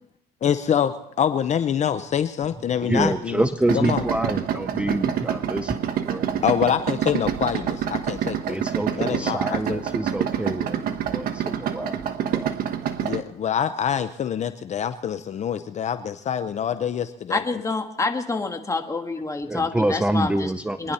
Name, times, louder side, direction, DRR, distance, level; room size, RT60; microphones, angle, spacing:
voice 1, 0.4-0.9 1.2-3.4 3.7-4.0 6.4-7.6 8.1-8.3 9.0-9.8 13.1-17.4, left 8 dB, 45° left, 11 dB, 0.7 m, -25 dB
voice 2, 2.8-5.8 6.1-6.3 8.5-12.5 19.5-20.9, right 1 dB, 5° right, 11 dB, 0.5 m, -27 dB
Idling, 3.7-13.2, right 9 dB, 60° right, 1.1 m, -27 dB
voice 3, 17.3-20.5 20.8-20.9, left 3 dB, 20° left, 5 dB, 1.6 m, -27 dB
24.0 x 10.5 x 4.2 m, 0.80 s
cardioid pair, 110°, 17 cm